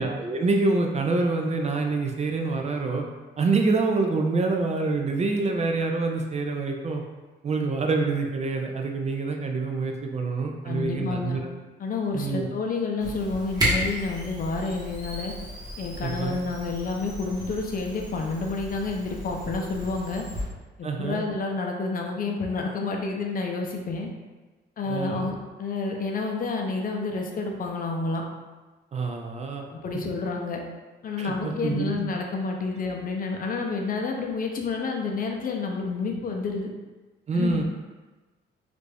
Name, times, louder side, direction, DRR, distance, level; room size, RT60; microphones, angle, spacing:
voice 1, 0.0-3.0 3.4-7.0 7.4-11.5 12.1-12.5 16.0-16.4 20.8-21.2 24.9-25.3 28.9-29.7 31.2-32.0 37.3-37.6, right 3 dB, 35° right, 3 dB, 0.4 m, -26 dB
voice 2, 10.6-11.4 11.8-15.3 15.8-20.2 20.8-24.1 24.8-28.2 29.7-30.6 31.0-36.7 37.3-37.6, left 4 dB, 45° left, 1 dB, 0.6 m, -29 dB
Camera, 13.0-20.4, equal, 20° right, 1.3 m, -33 dB
3.2 x 2.5 x 3.3 m, 1.2 s
cardioid pair, 90°, 20 cm